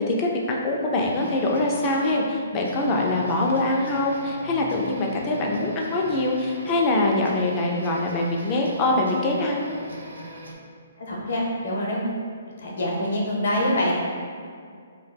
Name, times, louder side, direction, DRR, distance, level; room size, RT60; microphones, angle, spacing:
voice 1, 0.1-9.7, left 2 dB, 25° left, -1 dB, 0.4 m, -24 dB
sound 1, 1.0-10.5, right 1 dB, 90° right, 0.3 m, -40 dB
voice 2, 11.0-12.1 12.6-13.9, left 1 dB, 65° left, -3 dB, 0.7 m, -25 dB
2.2 x 2.1 x 3.3 m, 2.1 s
hypercardioid pair, 145°, 0 cm